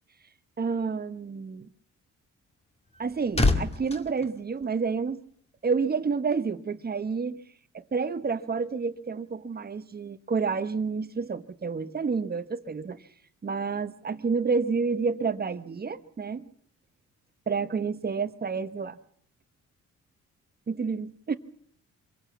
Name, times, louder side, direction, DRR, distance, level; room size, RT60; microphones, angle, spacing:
voice 1, 0.6-1.7 3.0-5.2 5.6-7.4 7.7-13.0 13.4-16.5 17.5-19.0 20.7-21.4, right 5 dB, 30° right, 12 dB, 1.1 m, -29 dB
sound 1, 2.6-5.3 5.6-5.8, left 2 dB, 20° left, 2.1 m, -29 dB
24.5 x 16.5 x 7.2 m, 0.62 s
cardioid pair, 90°, 30 cm